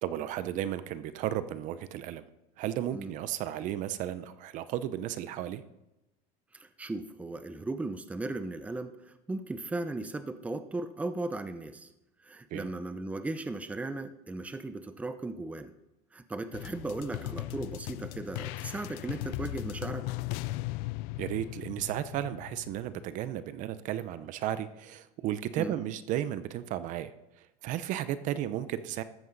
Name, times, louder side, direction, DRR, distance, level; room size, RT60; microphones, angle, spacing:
voice 1, 0.0-2.2 2.6-5.6 12.5-12.7 21.2-27.1 27.4-29.0, right 12 dB, 50° right, 13 dB, 0.7 m, -34 dB
voice 2, 6.5-11.9 12.2-15.7 16.1-20.1 25.6-25.7, right 2 dB, 10° right, 10 dB, 0.7 m, -37 dB
sound 1, 16.5-23.1, left 18 dB, 65° left, 0.4 m, -38 dB
14.0 x 12.5 x 4.0 m, 0.93 s
cardioid pair, 140°, 16 cm